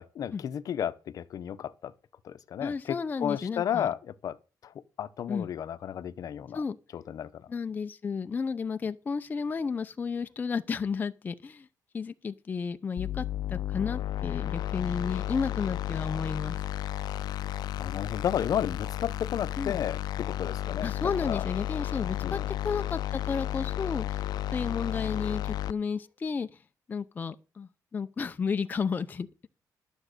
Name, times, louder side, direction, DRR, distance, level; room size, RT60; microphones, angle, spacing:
voice 1, 0.0-1.9 2.2-4.4 4.6-6.6 6.9-7.5 17.3-17.5 17.8-20.9 21.2-21.4 22.2-22.5, left 9 dB, 60° left, 0.8 m, -33 dB
voice 2, 2.6-3.9 5.3-5.5 6.5-6.8 7.5-11.7 11.9-16.6 19.6-19.8 20.8-24.2 24.5-26.5 26.9-29.3, left 5 dB, 25° left, 0.6 m, -32 dB
sound 1, 13.0-25.7, left 13 dB, 85° left, 0.5 m, -33 dB
12.5 x 7.1 x 6.5 m
wide cardioid pair, 165°, 7 cm